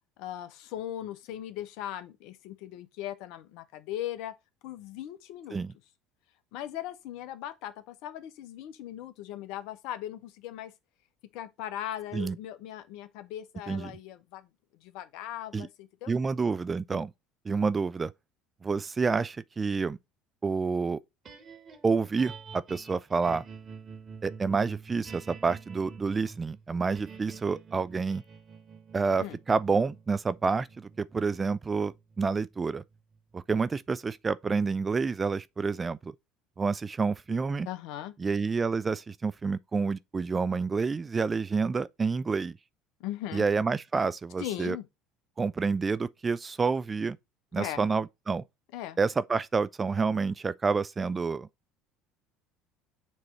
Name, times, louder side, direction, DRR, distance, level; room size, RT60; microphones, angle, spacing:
voice 1, 0.2-4.3 4.6-5.6 6.5-10.7 11.3-14.5 14.8-16.1 29.2-29.4 37.7-38.1 43.0-43.5 44.4-44.9 47.6-47.8 48.7-49.0, left 12 dB, 65° left, 0.7 m, -39 dB
voice 2, 16.1-17.1 17.5-18.1 18.6-20.0 20.4-21.0 21.8-23.4 24.2-28.2 28.9-32.8 33.3-36.1 36.6-37.7 38.2-42.6 43.3-44.8 45.4-47.2 47.5-48.4 49.0-51.5, right 4 dB, 25° right, 0.3 m, -28 dB
sound 1, 21.2-33.5, right 5 dB, 40° right, 1.7 m, -48 dB
7.2 x 3.1 x 4.2 m
hypercardioid pair, 65°, 0 cm